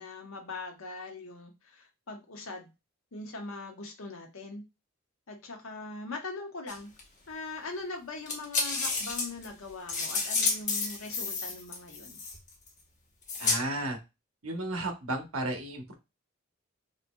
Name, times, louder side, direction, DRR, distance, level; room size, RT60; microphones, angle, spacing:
voice 1, 0.0-2.7 3.1-4.6 5.3-6.9 7.3-12.2, left 3 dB, 80° left, 1.0 m, -41 dB
sound 1, 6.7-7.0 8.2-12.7 13.3-13.6, left 4 dB, 35° left, 1.0 m, -30 dB
voice 2, 13.4-14.0 14.4-15.9, right 2 dB, 90° right, 1.0 m, -33 dB
4.1 x 2.7 x 2.2 m
head